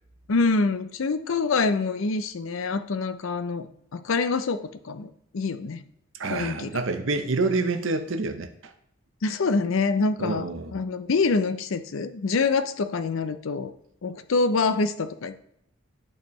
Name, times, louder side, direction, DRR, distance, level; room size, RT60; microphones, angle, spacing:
voice 1, 0.3-5.8 6.2-6.7 9.2-13.7 14.0-15.4, left 4 dB, 70° left, 11 dB, 0.5 m, -26 dB
voice 2, 6.2-8.5 10.2-10.7, right 3 dB, 65° right, 8 dB, 0.7 m, -27 dB
11.0 x 4.4 x 3.1 m, 0.76 s
head